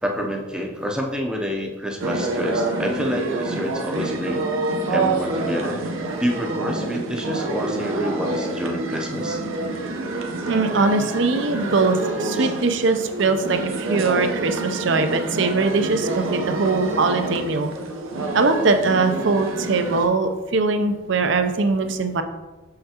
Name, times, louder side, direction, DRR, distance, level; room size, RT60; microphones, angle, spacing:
voice 1, 0.0-4.4 4.9-5.8 6.2-9.4 12.4-12.5, equal, 5° right, 1 dB, 0.6 m, -28 dB
sound 1, 2.0-20.1, right 2 dB, 85° right, 0.9 m, -27 dB
voice 2, 10.5-17.7 18.3-22.2, right 3 dB, 65° right, 7 dB, 0.6 m, -21 dB
6.4 x 5.7 x 2.9 m, 1.2 s
head